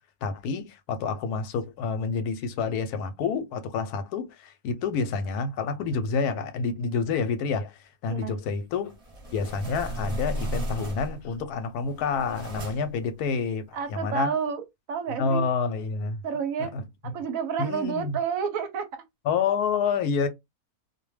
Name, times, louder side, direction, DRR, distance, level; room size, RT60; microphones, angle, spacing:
voice 1, 0.2-8.9 9.3-14.3 15.2-16.2 16.6-16.8 17.6-18.2 19.3-20.3, left 5 dB, 90° left, 1.1 m, -28 dB
sound 1, 8.8-11.3 11.8-13.0, right 1 dB, 30° right, 0.9 m, -34 dB
voice 2, 13.7-15.5 16.2-16.7 17.0-19.0, right 6 dB, 70° right, 0.9 m, -30 dB
2.5 x 2.1 x 3.1 m
omnidirectional pair, 1.6 m